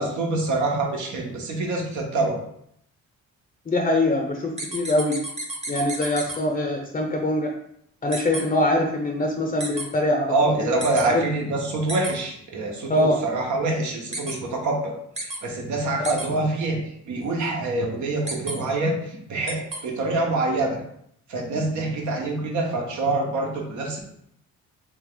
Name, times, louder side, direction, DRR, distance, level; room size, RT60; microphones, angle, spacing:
voice 1, 0.0-2.4 10.3-15.0 15.2-16.8 17.1-20.8 21.3-24.0, right 2 dB, 75° right, 0 dB, 1.1 m, -25 dB
voice 2, 3.7-5.3 5.7-7.5 8.0-10.5 11.0-11.2 12.9-13.2 16.0-16.1, left 1 dB, 25° left, 3 dB, 0.6 m, -23 dB
sound 1, 4.6-6.4 8.1-8.4 9.6-9.8 10.8-11.0 11.9-12.1 14.1-14.3 15.2-15.4 16.0-16.3 18.3-18.6 19.5-19.8, right 2 dB, 20° right, 1.0 m, -31 dB
3.4 x 3.1 x 3.7 m, 0.72 s
cardioid pair, 90°, 30 cm